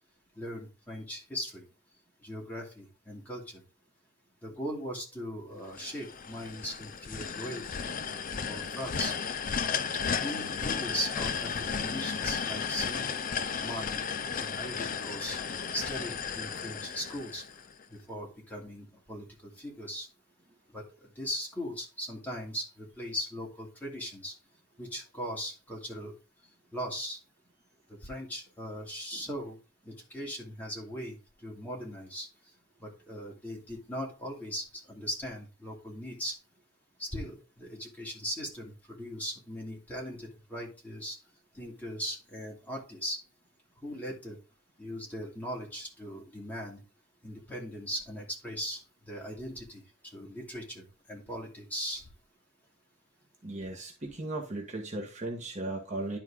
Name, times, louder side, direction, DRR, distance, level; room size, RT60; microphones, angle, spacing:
voice 1, 0.4-1.6 2.2-3.6 4.4-7.8 8.1-8.2 8.5-9.1 10.2-13.2 13.6-14.0 14.4-15.4 15.7-17.4 17.9-19.2 19.6-20.1 20.7-20.8 21.2-24.3 24.8-26.1 26.7-27.2 28.0-29.6 29.9-31.2 31.4-32.3 32.8-36.4 37.0-41.2 41.5-43.2 43.8-44.4 44.8-46.8 47.2-49.8 50.1-52.1, equal, 10° left, -3 dB, 2.6 m, -39 dB
sound 1, 5.7-17.8, left 6 dB, 40° left, 0.5 m, -34 dB
voice 2, 53.4-56.2, right 2 dB, 35° right, 0 dB, 1.4 m, -36 dB
11.0 x 4.6 x 3.6 m, 0.32 s
head